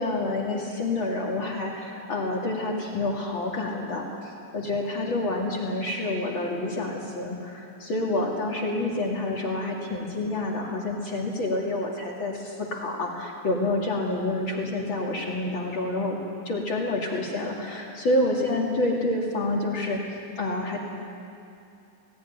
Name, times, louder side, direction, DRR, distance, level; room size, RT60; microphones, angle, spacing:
voice 1, 0.0-16.1 16.4-20.0 20.4-20.8, left 2 dB, 50° left, -1 dB, 1.5 m, -28 dB
19.5 x 17.0 x 10.0 m, 2.6 s
omnidirectional pair, 5.8 m